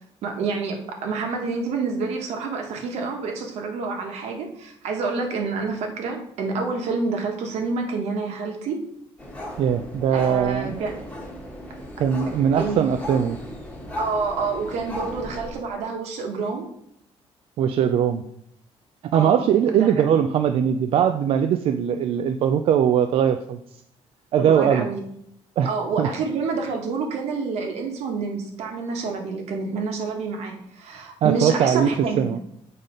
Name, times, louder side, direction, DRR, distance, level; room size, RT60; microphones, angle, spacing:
voice 1, 0.2-8.8 10.1-11.0 12.6-12.9 14.0-16.7 19.1-19.5 19.7-19.9 24.4-25.0 25.6-32.3, right 4 dB, 75° right, 3 dB, 1.4 m, -28 dB
sound 1, 9.2-15.5, left 1 dB, 10° left, 1.2 m, -36 dB
voice 2, 9.6-10.8 12.0-13.4 17.6-18.2 19.1-23.6 24.3-24.9 25.6-25.7 26.0-26.1 31.2-31.9 32.2-32.4, right 8 dB, 60° right, 8 dB, 0.4 m, -20 dB
7.3 x 4.0 x 5.1 m, 0.73 s
cardioid pair, 165°, 11 cm